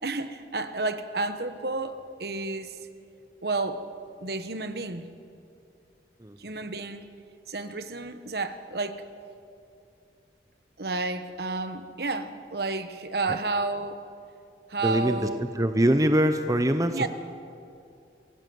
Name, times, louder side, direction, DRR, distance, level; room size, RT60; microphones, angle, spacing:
voice 1, 0.0-2.8 3.4-3.8 4.2-5.1 6.4-7.1 7.5-9.0 10.8-14.0 14.7-15.4 16.9-17.1, right 3 dB, 60° right, 10 dB, 1.2 m, -31 dB
voice 2, 14.8-15.2 15.6-17.1, right 1 dB, 20° right, 8 dB, 0.7 m, -23 dB
25.5 x 17.0 x 7.8 m, 2.5 s
head